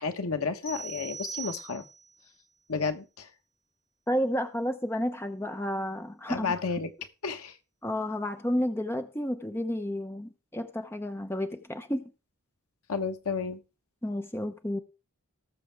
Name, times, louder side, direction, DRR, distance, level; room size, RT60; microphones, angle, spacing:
voice 1, 0.0-1.9 2.7-3.3 6.3-6.9 7.2-7.6 12.9-13.6, left 4 dB, 75° left, 1.2 m, -31 dB
sound 1, 0.6-2.1, right 6 dB, 45° left, 5.2 m, -40 dB
voice 2, 4.1-6.5 7.8-12.1 14.0-14.8, equal, 10° left, 0.8 m, -31 dB
18.5 x 7.1 x 3.5 m
head